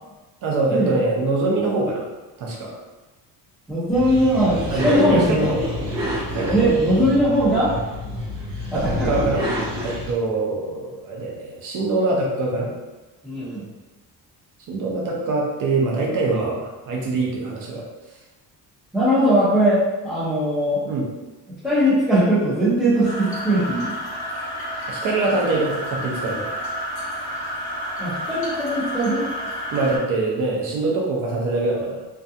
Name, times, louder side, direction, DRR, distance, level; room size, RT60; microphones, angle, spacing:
voice 1, 0.4-2.1 2.4-2.8 4.7-5.6 6.3-6.7 8.7-9.5 9.8-12.7 14.7-17.8 20.8-21.1 24.9-26.5 29.7-32.1, right 3 dB, 50° right, -1 dB, 0.6 m, -24 dB
voice 2, 3.7-5.5 6.0-6.1 6.5-7.8 8.7-9.2 13.2-13.6 18.9-20.9 21.6-23.9 28.0-29.2, equal, ahead, -13 dB, 0.3 m, -20 dB
sound 1, 3.9-10.1, left 1 dB, 90° right, 0.7 m, -28 dB
sound 2, 23.0-30.0, equal, 45° left, 0.8 m, -30 dB
2.3 x 2.3 x 2.6 m, 1.1 s
cardioid pair, 175°, 42 cm